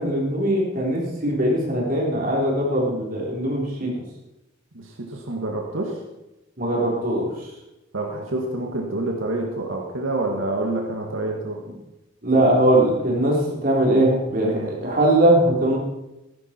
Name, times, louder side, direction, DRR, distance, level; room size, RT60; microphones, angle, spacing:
voice 1, 0.0-3.9 6.6-7.3 12.2-15.8, right 1 dB, 45° right, -2 dB, 3.9 m, -20 dB
voice 2, 4.7-6.0 7.9-11.6 14.4-14.7, right 2 dB, 90° right, 0 dB, 2.0 m, -27 dB
15.0 x 12.0 x 4.6 m, 0.98 s
head